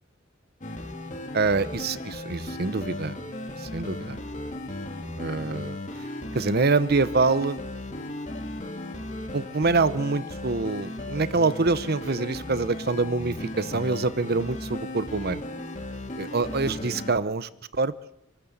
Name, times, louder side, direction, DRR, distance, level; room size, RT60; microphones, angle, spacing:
sound 1, 0.6-17.1, left 1 dB, 40° left, 2.6 m, -36 dB
voice 1, 1.3-3.2 3.6-4.2 5.2-5.8 6.3-7.6 9.3-15.4 16.2-17.9, right 3 dB, 55° right, 15 dB, 0.8 m, -25 dB
28.0 x 13.0 x 8.0 m, 0.89 s
head